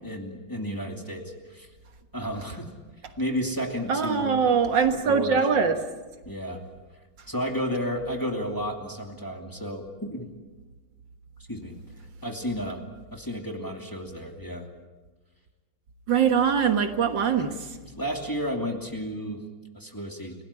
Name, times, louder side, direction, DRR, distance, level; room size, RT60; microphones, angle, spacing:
voice 1, 0.0-1.7 2.1-2.7 3.2-4.5 5.0-5.5 6.2-6.8 7.3-10.3 11.5-11.7 12.2-14.7 17.4-17.5 17.8-20.4, equal, 10° left, 3 dB, 2.6 m, -32 dB
voice 2, 3.9-5.8 16.1-17.5, right 6 dB, 65° right, 8 dB, 2.0 m, -22 dB
29.5 x 18.0 x 8.5 m, 1.3 s
omnidirectional pair, 2.2 m